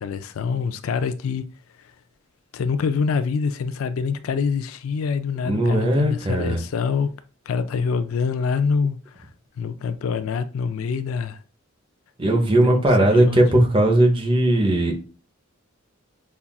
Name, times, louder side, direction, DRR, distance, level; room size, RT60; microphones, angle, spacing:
voice 1, 0.0-1.5 2.5-7.1 7.5-9.3 9.6-11.4 12.6-13.4, left 5 dB, 85° left, 0.4 m, -25 dB
voice 2, 5.4-6.6 12.2-15.0, right 1 dB, 25° right, 0.7 m, -18 dB
5.5 x 2.4 x 2.3 m
head